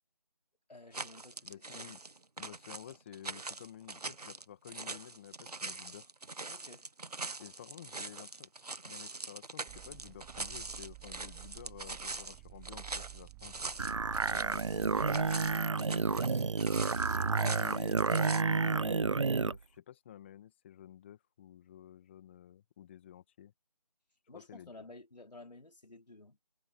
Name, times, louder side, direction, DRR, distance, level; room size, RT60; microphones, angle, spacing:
voice 1, 0.7-1.7 6.5-6.9 16.8-17.8 24.3-26.4, left 2 dB, 85° left, 4.3 m, -54 dB
sound 1, 0.9-18.4, right 3 dB, 70° right, 1.7 m, -43 dB
voice 2, 1.4-2.0 2.4-6.1 7.4-13.5 14.1-15.0 15.7-16.3 17.1-23.5 24.3-24.9, left 10 dB, 15° left, 1.9 m, -52 dB
sound 2, 9.7-15.6, right 21 dB, 5° right, 0.6 m, -52 dB
sound 3, 13.8-19.6, right 4 dB, 50° right, 0.6 m, -30 dB
figure-of-eight pair, 165°, 21 cm